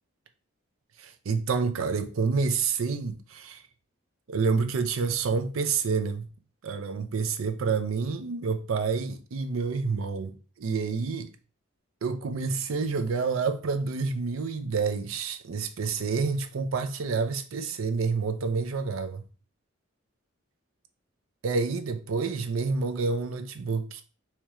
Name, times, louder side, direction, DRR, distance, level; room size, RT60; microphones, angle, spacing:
voice 1, 1.0-3.6 4.3-6.3 6.6-11.3 12.0-19.2 21.4-24.0, right 4 dB, 80° right, 0.5 m, -28 dB
4.5 x 2.9 x 2.3 m
head